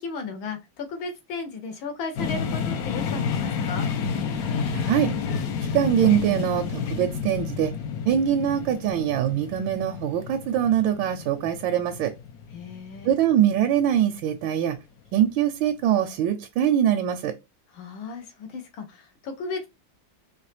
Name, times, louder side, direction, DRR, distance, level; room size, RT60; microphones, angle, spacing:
voice 1, 0.0-3.9 12.5-13.2 17.7-19.7, left 4 dB, 85° left, 1.8 m, -35 dB
sound 1, 2.2-13.9, left 6 dB, 65° left, 1.0 m, -30 dB
voice 2, 4.7-5.1 5.7-7.7 8.0-12.1 13.0-14.8 15.1-17.3, right 10 dB, 80° right, 1.3 m, -23 dB
4.3 x 3.0 x 3.3 m
omnidirectional pair, 2.1 m